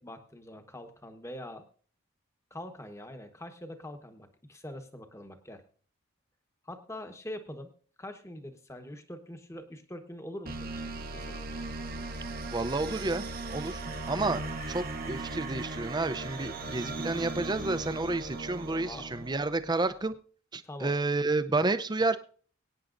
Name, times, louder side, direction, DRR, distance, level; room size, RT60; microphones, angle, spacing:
voice 1, 0.0-1.6 2.5-5.6 6.6-7.7 8.0-11.4 18.8-19.1 20.6-20.9, left 1 dB, 15° left, 7 dB, 1.1 m, -44 dB
sound 1, 10.5-19.9, right 2 dB, 45° right, 0.9 m, -38 dB
voice 2, 12.5-13.2 13.5-13.8 14.1-20.1 20.5-22.2, right 2 dB, 20° right, 12 dB, 0.5 m, -30 dB
23.0 x 9.3 x 2.6 m, 0.43 s
head